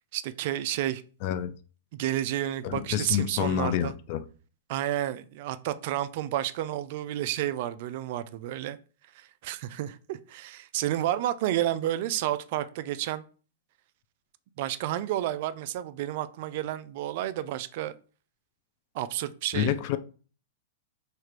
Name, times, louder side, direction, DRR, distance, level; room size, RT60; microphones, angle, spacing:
voice 1, 0.1-1.0 1.9-3.9 4.7-8.8 9.1-13.2 14.6-17.9 18.9-19.7, right 13 dB, 50° right, 0.3 m, -31 dB
voice 2, 1.2-1.5 2.6-4.2 19.5-20.0, left 10 dB, 45° left, 0.4 m, -28 dB
3.2 x 2.4 x 4.4 m
hypercardioid pair, 140°, 0 cm